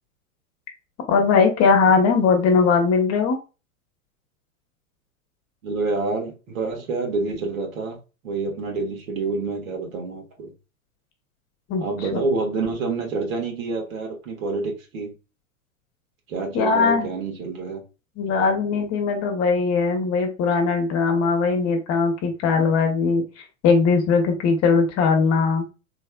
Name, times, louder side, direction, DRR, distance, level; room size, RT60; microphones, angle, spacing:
voice 1, 1.1-3.4 11.7-11.8 12.1-12.2 16.5-17.1 18.2-23.2 23.6-25.6, left 5 dB, 40° left, 1.0 m, -20 dB
voice 2, 5.6-8.0 8.2-10.5 11.8-15.1 16.3-17.8, right 3 dB, 75° right, 1.6 m, -27 dB
3.3 x 3.2 x 2.2 m
hypercardioid pair, 100°, 42 cm